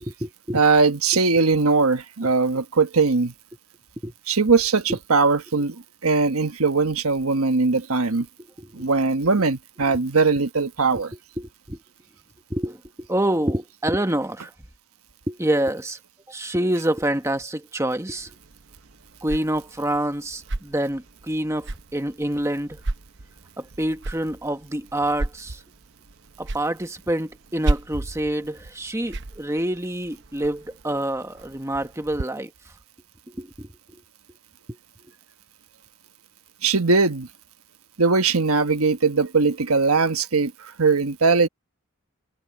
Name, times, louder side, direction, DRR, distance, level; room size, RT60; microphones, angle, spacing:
voice 1, 0.0-0.6 4.0-4.1 4.9-5.0 8.6-8.8 11.4-11.8 12.5-14.5 15.3-16.0 16.3-18.3 19.2-22.8 23.6-25.6 26.4-32.5 33.3-34.0 34.7-34.8, right 1 dB, 15° right, 1.2 m, -27 dB
voice 2, 0.5-3.3 4.3-8.3 8.7-11.1 36.6-37.3 38.0-41.5, right 4 dB, 85° right, 1.3 m, -20 dB
sound 1, 18.2-32.2, right 2 dB, 55° right, 0.9 m, -34 dB
head